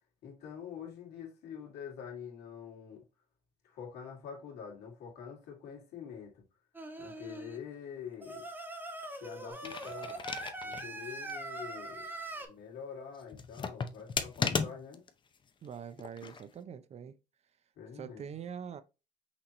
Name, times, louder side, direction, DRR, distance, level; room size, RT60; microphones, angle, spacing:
voice 1, 0.2-3.0 3.6-6.4 7.0-8.4 9.2-10.2 10.6-12.1 12.4-15.0 17.8-18.2, left 7 dB, 80° left, 2.0 m, -46 dB
Singing, 6.7-7.6 8.2-12.5, right 2 dB, 10° right, 1.0 m, -42 dB
sound 1, 9.5-10.9 11.3-11.4 13.3-15.1 16.0-16.4, left 5 dB, 30° left, 0.5 m, -35 dB
voice 2, 15.6-17.2 17.9-18.8, right 7 dB, 40° right, 0.4 m, -44 dB
5.9 x 2.9 x 2.9 m
cardioid pair, 110°, 17 cm